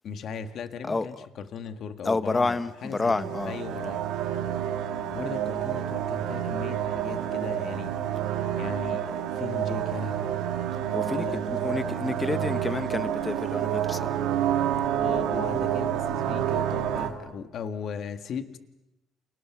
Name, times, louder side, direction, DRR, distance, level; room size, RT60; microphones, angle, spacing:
voice 1, 0.0-3.1 3.4-4.0 5.1-7.9 8.6-10.4 11.1-12.6 14.9-18.6, left 6 dB, 50° left, 1.7 m, -37 dB
voice 2, 0.8-1.3 2.0-3.6 10.9-14.2, left 3 dB, 15° left, 0.9 m, -29 dB
sound 1, 2.8-17.1, right 10 dB, 75° right, 2.7 m, -29 dB
29.5 x 29.0 x 6.0 m
cardioid pair, 135°, 0 cm